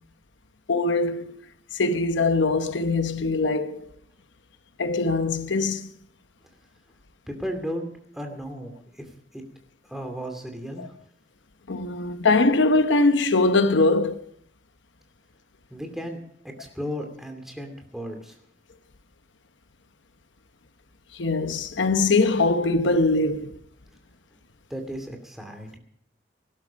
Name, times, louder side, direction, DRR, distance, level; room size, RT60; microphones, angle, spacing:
voice 1, 0.7-1.4 1.7-3.9 4.8-5.9 10.8-10.9 11.7-14.2 21.1-23.6, left 3 dB, 80° left, 0.9 m, -22 dB
voice 2, 7.3-7.9 8.1-9.1 9.3-9.4 9.9-10.9 15.7-16.2 16.6-18.4 24.7-25.8, equal, ahead, 2.5 m, -34 dB
18.5 x 12.0 x 5.1 m
head